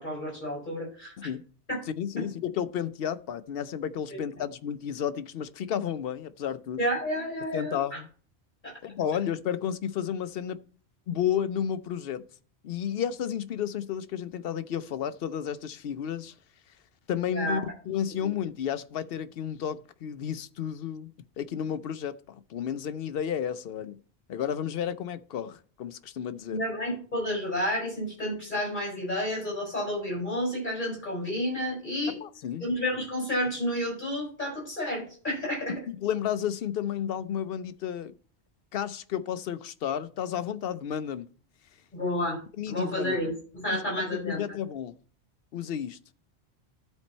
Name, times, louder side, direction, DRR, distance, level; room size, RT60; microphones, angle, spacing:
voice 1, 0.0-1.3 4.1-4.2 6.8-8.0 8.6-8.7 17.3-17.6 18.2-18.3 26.5-32.2 32.6-35.8 41.9-42.4 42.7-43.4 43.6-44.4, equal, 45° left, 5.4 m, -30 dB
voice 2, 2.0-6.8 7.5-8.1 8.8-10.6 11.1-12.3 12.6-16.3 17.1-21.1 21.4-24.0 24.3-26.6 32.1-32.7 35.9-38.1 38.7-41.3 42.6-43.2 43.7-44.9 45.5-46.0, left 9 dB, 65° left, 0.7 m, -32 dB
12.5 x 4.3 x 4.2 m
omnidirectional pair, 1.1 m